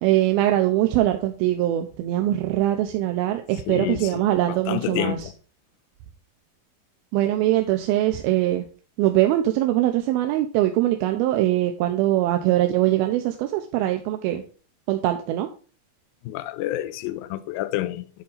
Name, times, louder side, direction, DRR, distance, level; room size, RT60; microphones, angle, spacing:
voice 1, 0.0-5.3 7.1-8.7 9.0-14.4 14.9-15.5, right 14 dB, 80° right, 2.5 m, -22 dB
voice 2, 3.7-5.3 16.3-18.2, left 14 dB, 80° left, 2.2 m, -29 dB
10.5 x 4.0 x 5.3 m
omnidirectional pair, 4.5 m